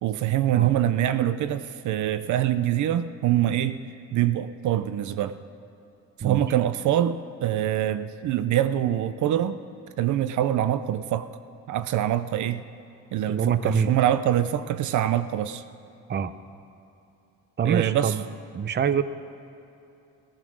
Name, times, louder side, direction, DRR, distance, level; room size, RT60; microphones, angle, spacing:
voice 1, 0.0-3.8 4.1-5.4 6.2-9.6 10.0-11.3 11.7-12.6 13.1-15.6 17.6-18.1, right 11 dB, 75° right, 12 dB, 0.6 m, -24 dB
voice 2, 13.3-13.9 16.1-16.3 17.6-18.2 18.5-19.0, right 7 dB, 35° right, 13 dB, 0.6 m, -24 dB
17.0 x 11.0 x 6.2 m, 2.8 s
cardioid pair, 90°, 30 cm